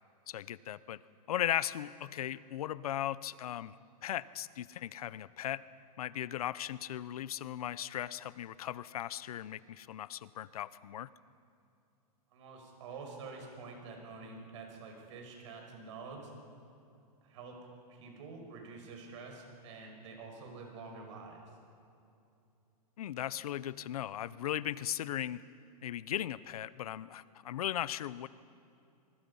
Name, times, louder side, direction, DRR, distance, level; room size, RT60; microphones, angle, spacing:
voice 1, 0.3-1.0 1.3-3.8 4.0-5.6 6.0-11.1 23.0-25.4 25.8-28.3, left 12 dB, 70° left, 18 dB, 0.7 m, -37 dB
voice 2, 12.3-16.3 17.2-17.6 17.9-21.6, right 4 dB, 50° right, 2 dB, 5.7 m, -47 dB
25.0 x 23.0 x 5.6 m, 2.6 s
supercardioid pair, 165°, 20 cm